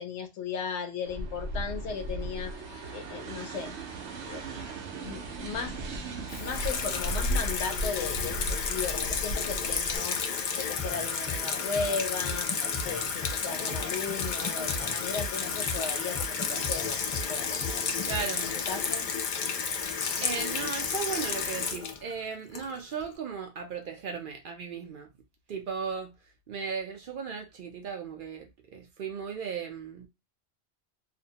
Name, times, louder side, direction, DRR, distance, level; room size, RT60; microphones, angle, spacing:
voice 1, 0.0-2.5 2.9-3.7 4.2-4.7 5.0-5.7 6.4-10.2 10.5-12.5 12.8-17.0 17.3-17.6 18.4-19.0, left 5 dB, 90° left, 0.9 m, -36 dB
sound 1, 1.0-10.0, right 1 dB, 85° right, 0.9 m, -36 dB
Water tap faucet / Sink (filling or washing), 6.3-23.0, left 6 dB, 55° left, 0.5 m, -32 dB
sound 2, 10.8-18.6, left 2 dB, 30° left, 1.0 m, -39 dB
voice 2, 18.0-18.5 20.2-25.1 25.5-26.1 26.5-30.1, right 6 dB, 60° right, 0.6 m, -36 dB
2.6 x 2.1 x 2.7 m
omnidirectional pair, 1.1 m